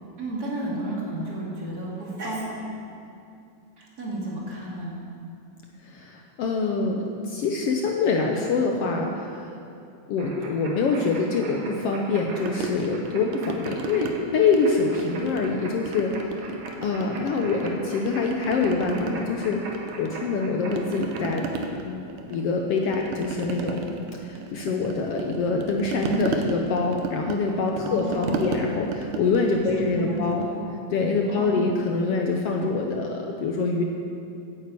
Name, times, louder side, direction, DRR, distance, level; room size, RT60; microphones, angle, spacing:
voice 1, 0.2-2.4 3.8-5.0 19.0-19.3 27.8-28.6 29.6-30.7 31.3-31.7, right 1 dB, 30° right, -5 dB, 2.9 m, -32 dB
voice 2, 5.8-9.5 10.1-16.1 16.8-19.6 20.0-21.5 21.8-23.9 24.2-30.4 30.9-33.8, left 4 dB, 70° left, 1 dB, 1.6 m, -25 dB
sound 1, 10.2-21.2, right 2 dB, 60° right, 2.5 m, -42 dB
sound 2, 12.5-14.1 14.5-15.5 15.9-17.7 18.0-20.4 20.7-30.5, right 4 dB, 85° right, 2.4 m, -35 dB
9.5 x 9.1 x 8.3 m, 2.6 s
omnidirectional pair, 3.4 m